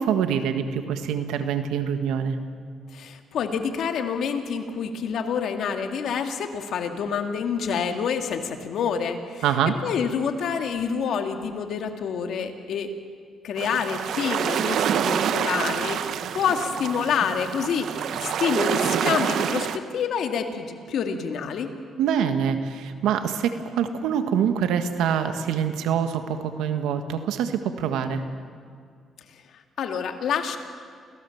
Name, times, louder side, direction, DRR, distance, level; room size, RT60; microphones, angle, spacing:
voice 1, 0.0-2.4 9.4-9.8 22.0-28.2, right 8 dB, 90° right, 8 dB, 1.6 m, -25 dB
voice 2, 2.9-9.4 9.8-12.9 13.4-19.7 19.9-21.7 29.8-30.6, left 6 dB, 70° left, 5 dB, 2.1 m, -27 dB
sound 1, 13.6-19.8, right 8 dB, 70° right, 1.0 m, -27 dB
28.5 x 16.5 x 7.2 m, 2.1 s
cardioid pair, 90°, 0 cm